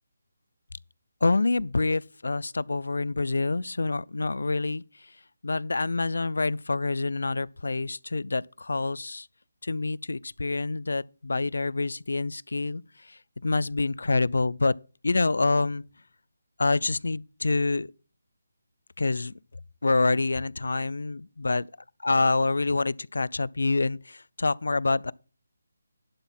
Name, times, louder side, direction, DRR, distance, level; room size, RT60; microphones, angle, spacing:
voice 1, 1.2-4.8 5.4-9.3 9.6-14.7 15.0-15.8 16.6-17.9 19.0-19.3 19.8-21.7 22.0-25.1, left 3 dB, 85° left, 0.4 m, -27 dB
11.5 x 4.2 x 7.1 m
hypercardioid pair, 175°, 0 cm